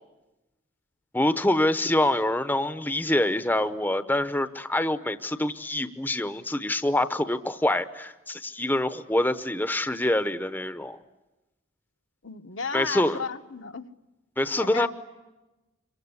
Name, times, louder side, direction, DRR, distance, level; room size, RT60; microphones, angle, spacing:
voice 1, 1.1-11.0 12.7-13.2 14.4-14.9, left 1 dB, 10° left, 0.9 m, -25 dB
voice 2, 12.2-13.9 14.5-14.9, left 5 dB, 65° left, 1.2 m, -34 dB
26.5 x 23.5 x 9.7 m
head